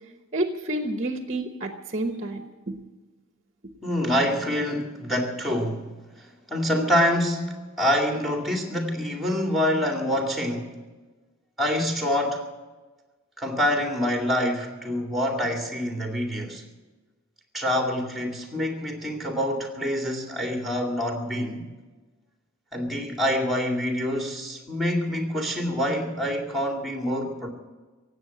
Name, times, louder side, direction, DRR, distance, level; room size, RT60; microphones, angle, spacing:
voice 1, 0.3-2.8, right 1 dB, 35° right, 1.0 m, -29 dB
voice 2, 3.8-10.8 11.6-12.5 13.4-16.7 17.5-21.7 22.7-27.5, equal, ahead, 2.3 m, -26 dB
17.5 x 8.0 x 10.0 m
head